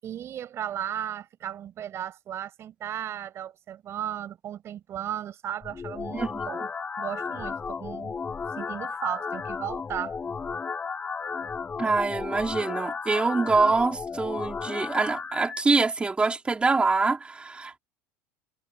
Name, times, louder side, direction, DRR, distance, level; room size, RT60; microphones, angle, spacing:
voice 1, 0.0-6.7 7.0-8.2 8.6-10.2, right 10 dB, 40° right, 5.6 m, -35 dB
sound 1, 5.6-15.6, left 5 dB, 20° left, 5.8 m, -34 dB
voice 2, 6.1-6.5 11.8-17.8, right 3 dB, 15° right, 3.6 m, -25 dB
supercardioid pair, 115°, 7 cm